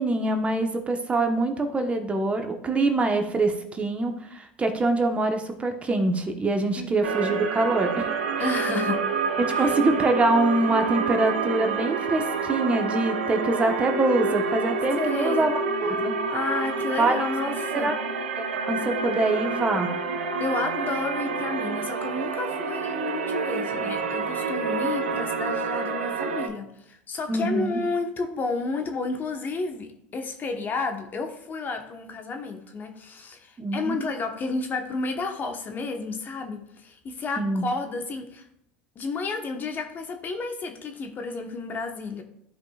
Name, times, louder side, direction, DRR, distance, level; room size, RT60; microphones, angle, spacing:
voice 1, 0.0-8.1 8.4-8.5 9.6-15.5 16.0-16.2 17.0-17.2 17.7-18.0 18.4-19.9 27.3-27.8 33.6-34.1 37.4-37.6, right 2 dB, 20° right, 5 dB, 1.1 m, -24 dB
voice 2, 6.8-7.1 8.4-9.0 9.5-9.7 14.9-15.5 16.3-17.9 20.4-38.5 38.9-42.2, left 3 dB, 35° left, 5 dB, 1.1 m, -31 dB
sound 1, 7.0-26.5, right 4 dB, 85° right, 0.8 m, -28 dB
13.5 x 5.0 x 2.4 m, 0.76 s
hypercardioid pair, 85°, 6 cm